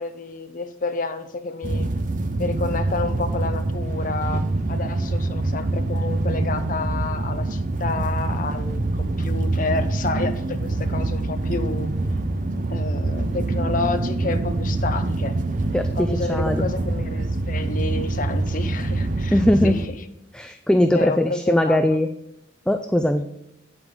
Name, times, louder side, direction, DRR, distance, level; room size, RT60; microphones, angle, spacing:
voice 1, 0.0-1.9 2.4-11.9 12.7-15.4 16.0-19.9 20.9-22.0, left 3 dB, 40° left, 9 dB, 0.7 m, -30 dB
sound 1, 1.6-19.9, right 2 dB, 40° right, 0.5 m, -25 dB
voice 2, 15.7-16.6 19.3-19.8 20.3-22.1 22.7-23.2, left 1 dB, 5° left, 7 dB, 0.3 m, -20 dB
9.0 x 7.9 x 3.8 m, 0.83 s
head